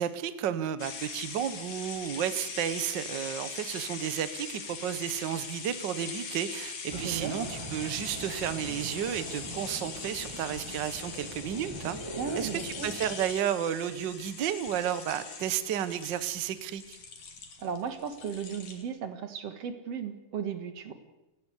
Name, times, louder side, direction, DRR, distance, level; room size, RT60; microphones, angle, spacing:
voice 1, 0.0-12.0 12.4-17.0, right 10 dB, 75° right, 12 dB, 1.0 m, -32 dB
sound 1, 0.8-18.8, left 5 dB, 70° left, 4.0 m, -41 dB
sound 2, 6.9-13.2, right 1 dB, 10° right, 1.9 m, -42 dB
voice 2, 6.9-7.4 12.2-12.9 17.6-20.9, right 7 dB, 55° right, 8 dB, 2.7 m, -35 dB
29.5 x 12.0 x 8.3 m, 0.99 s
omnidirectional pair, 3.5 m